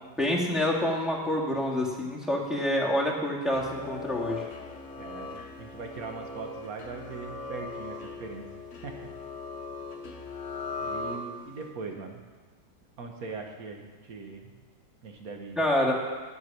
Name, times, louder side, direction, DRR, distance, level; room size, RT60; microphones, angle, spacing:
voice 1, 0.2-4.5 15.6-15.9, left 1 dB, ahead, -4 dB, 1.5 m, -27 dB
sound 1, 3.4-11.7, left 3 dB, 45° left, 1.2 m, -39 dB
voice 2, 5.0-8.5 8.8-9.1 10.8-12.2 13.0-14.5 15.0-15.6, right 4 dB, 55° right, 3 dB, 1.4 m, -40 dB
9.7 x 8.2 x 6.0 m, 1.5 s
omnidirectional pair, 2.1 m